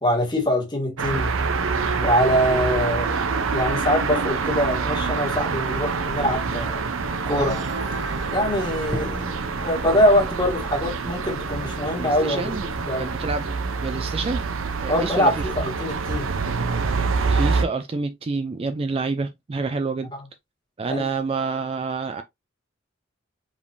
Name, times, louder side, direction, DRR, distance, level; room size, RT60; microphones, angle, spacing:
voice 1, 0.0-1.3 2.0-3.2 3.5-6.8 7.2-7.6 8.3-9.2 9.5-12.5 12.8-13.1 14.9-16.3 20.1-20.2 20.9-21.1, equal, 20° left, 1.7 m, -23 dB
sound 1, 1.0-17.7, right 4 dB, 90° right, 0.7 m, -26 dB
sound 2, 7.3-10.0, right 1 dB, 65° right, 1.1 m, -37 dB
Drum, 8.9-12.7, right 1 dB, 5° right, 0.8 m, -39 dB
voice 2, 12.0-14.5 14.8-15.5 17.3-20.1 20.8-22.2, right 4 dB, 30° right, 0.4 m, -28 dB
5.1 x 3.4 x 2.6 m
head